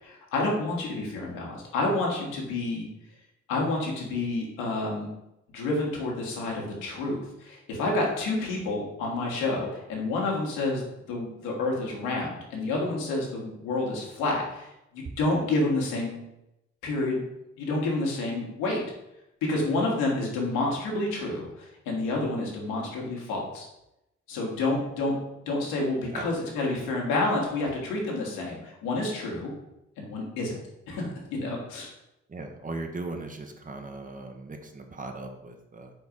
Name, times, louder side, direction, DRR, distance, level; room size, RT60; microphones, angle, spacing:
voice 1, 0.0-2.9 3.5-5.1 5.5-10.8 11.1-16.2 16.8-17.2 17.6-18.8 19.5-23.7 24.3-25.1 25.5-29.5 30.0-30.6 30.9-31.9, left 2 dB, 65° left, -1 dB, 1.7 m, -29 dB
voice 2, 32.3-35.9, right 2 dB, 25° right, 4 dB, 0.9 m, -38 dB
4.6 x 4.4 x 5.2 m, 0.88 s
figure-of-eight pair, 45°, 34 cm